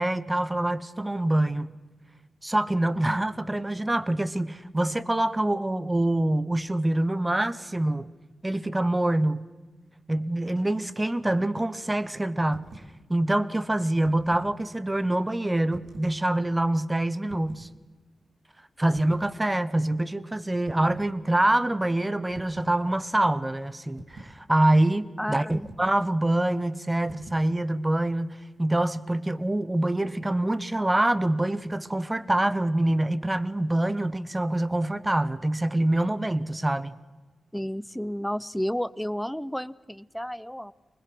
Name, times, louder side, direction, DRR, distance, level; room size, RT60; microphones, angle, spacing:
voice 1, 0.0-1.7 2.4-8.1 8.4-9.5 10.1-12.7 13.1-17.7 18.8-37.0, right 1 dB, 15° right, 0.9 m, -25 dB
sound 1, 12.5-12.9 13.8-14.5 15.7-16.2 17.3-17.7 18.9-19.3 20.7-21.1 22.3-22.8 24.0-24.4 25.5-25.9 27.1-27.5, right 2 dB, 65° right, 2.6 m, -45 dB
voice 2, 25.2-25.7 37.5-40.7, equal, 5° left, 0.6 m, -31 dB
23.5 x 20.5 x 6.1 m
cardioid pair, 75°, 0 cm